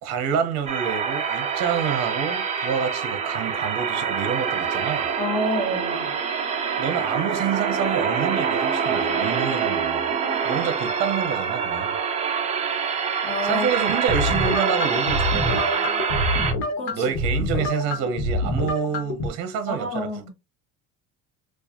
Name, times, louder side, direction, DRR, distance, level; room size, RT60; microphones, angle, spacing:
voice 1, 0.0-5.1 6.8-10.1 10.4-12.0 13.4-15.7 16.9-20.3, right 7 dB, 50° right, 0.8 m, -28 dB
sound 1, 0.7-16.5, right 6 dB, 20° right, 0.5 m, -25 dB
voice 2, 5.2-6.1 13.2-13.7 16.8-17.1 19.7-20.3, equal, 15° left, 1.0 m, -28 dB
sound 2, 14.1-19.3, left 2 dB, 75° left, 1.2 m, -26 dB
4.6 x 2.4 x 2.8 m
cardioid pair, 180°, 35 cm